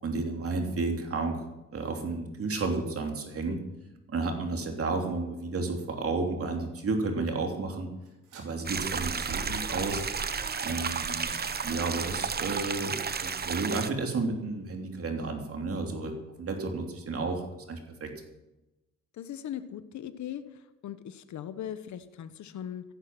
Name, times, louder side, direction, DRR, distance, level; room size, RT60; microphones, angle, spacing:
voice 1, 0.0-1.4 1.7-3.6 4.1-7.9 8.3-10.0 10.6-11.3 11.6-18.1, right 3 dB, 50° right, 3 dB, 3.2 m, -32 dB
sound 1, 8.0-13.9, right 4 dB, 85° right, 4.2 m, -45 dB
sound 2, 8.7-13.9, right 6 dB, 30° right, 1.0 m, -33 dB
voice 2, 19.1-20.4 20.8-22.8, left 10 dB, 70° left, 12 dB, 1.2 m, -39 dB
15.0 x 11.0 x 6.1 m, 0.98 s
cardioid pair, 90°, 30 cm